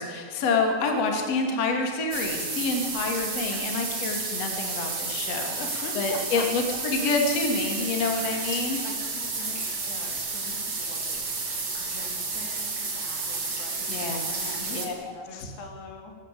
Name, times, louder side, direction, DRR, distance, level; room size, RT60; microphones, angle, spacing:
voice 1, 0.0-5.6 5.9-8.8 13.9-15.5, left 3 dB, 40° left, 3 dB, 3.4 m, -28 dB
sound 1, 2.1-14.9, right 3 dB, 25° right, 3.0 m, -31 dB
voice 2, 5.6-6.5 7.0-7.1 8.8-16.2, left 4 dB, 70° left, 3 dB, 4.9 m, -44 dB
25.5 x 13.5 x 8.6 m, 2.1 s
omnidirectional pair, 5.0 m